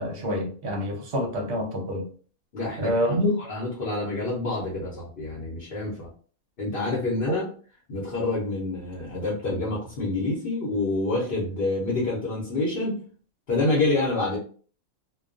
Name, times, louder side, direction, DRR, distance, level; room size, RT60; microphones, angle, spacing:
voice 1, 0.0-2.1 2.8-3.4 7.3-7.4, equal, 60° right, 2 dB, 0.8 m, -26 dB
voice 2, 2.5-3.1 3.5-6.1 6.6-7.5 7.9-13.0 13.5-14.4, left 2 dB, 50° left, -4 dB, 0.8 m, -27 dB
2.3 x 2.2 x 2.4 m, 0.42 s
omnidirectional pair, 1.5 m